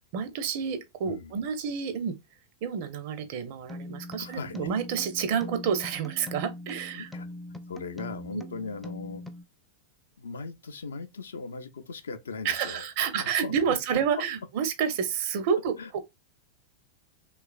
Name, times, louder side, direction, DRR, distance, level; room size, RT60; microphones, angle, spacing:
voice 1, 0.1-2.2 2.6-7.1 8.3-8.4 12.4-16.0, right 7 dB, 50° right, 0.5 m, -29 dB
sound 1, 3.7-9.4, left 1 dB, 5° left, 0.4 m, -41 dB
voice 2, 4.2-4.7 6.9-7.3 7.7-9.2 10.2-13.8 15.8-15.9, left 4 dB, 70° left, 0.4 m, -39 dB
3.0 x 2.3 x 2.3 m
figure-of-eight pair, 90°, 0 cm